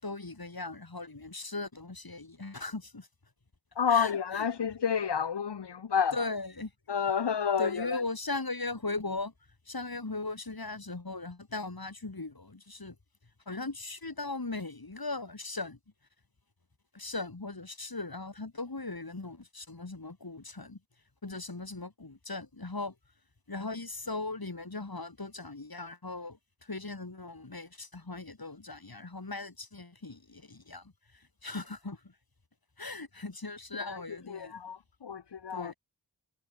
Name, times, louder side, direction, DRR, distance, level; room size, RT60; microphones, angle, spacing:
voice 1, 0.0-3.1 3.9-4.5 6.1-6.7 7.6-9.3 9.7-13.0 13.5-15.8 16.9-20.8 21.2-22.9 23.5-32.1 32.8-34.6 35.5-35.7, left 3 dB, 60° left, 7.0 m, -38 dB
voice 2, 3.8-6.2 6.9-8.0 33.8-35.7, left 7 dB, 85° left, 0.9 m, -30 dB
wide cardioid pair, 40°, 40 cm